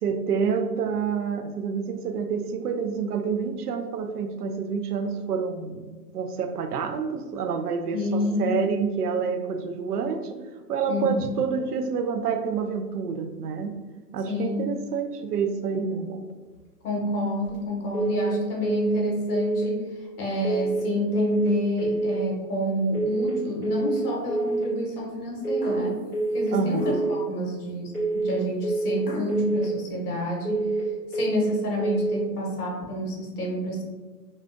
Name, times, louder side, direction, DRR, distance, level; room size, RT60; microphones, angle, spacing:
voice 1, 0.0-10.4 10.7-13.7 14.1-16.2 26.5-26.9, right 6 dB, 75° right, 6 dB, 0.5 m, -28 dB
voice 2, 7.9-8.5 10.9-11.4 14.3-14.6 16.8-26.0 26.3-30.7 31.1-33.8, left 1 dB, 65° left, -2 dB, 1.1 m, -28 dB
sound 1, 17.9-18.3 18.6-19.0 19.3-19.7 20.4-20.8 21.1-21.5 21.8-22.2 22.9-23.3 23.6-24.0 24.3-24.7 25.4-25.8 26.1-26.5 26.8-27.2 27.9-28.3 28.6-29.0 29.3-29.7 30.4-30.8 31.1-31.5 31.8-32.2, right 2 dB, 15° right, 0.9 m, -26 dB
sound 2, 25.6-26.1 26.7-27.3 29.0-29.4, equal, 35° left, 0.6 m, -36 dB
3.6 x 2.4 x 2.5 m, 1.3 s
hypercardioid pair, 175°, 47 cm